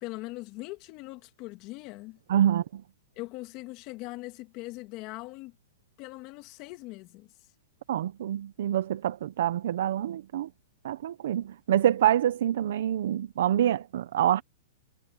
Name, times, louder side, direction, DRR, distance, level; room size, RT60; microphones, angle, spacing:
voice 1, 0.0-2.2 3.2-5.5 6.0-7.3, left 21 dB, 35° left, 2.3 m, -41 dB
voice 2, 2.3-2.8 7.9-10.5 10.8-14.4, right 11 dB, 65° right, 0.9 m, -26 dB
hypercardioid pair, 150°, 0 cm